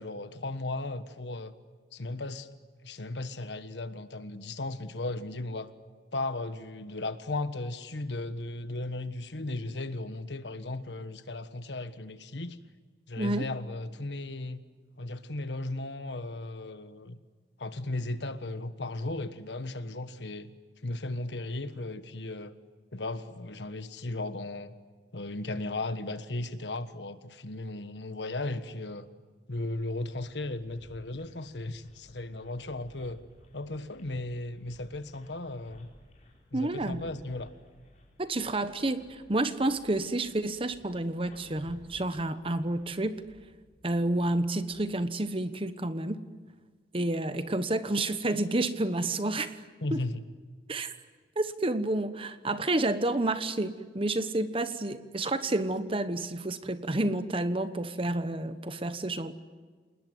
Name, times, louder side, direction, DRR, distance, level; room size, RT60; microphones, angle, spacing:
voice 1, 0.0-1.5 1.9-2.5 2.8-5.7 6.1-12.6 13.1-14.6 15.0-17.2 17.6-20.5 20.8-22.5 22.9-24.7 25.1-29.1 29.5-33.2 33.5-35.9 36.5-37.5 49.8-50.2, left 2 dB, 85° left, 11 dB, 1.4 m, -36 dB
voice 2, 13.2-13.5 36.5-37.0 38.2-43.2 43.8-46.2 46.9-49.6 49.9-50.0 50.7-50.9 51.4-59.3, right 2 dB, 30° right, 11 dB, 1.1 m, -30 dB
sound 1, 30.1-44.9, equal, 45° left, 4.9 m, -57 dB
28.0 x 20.0 x 9.5 m, 1.5 s
head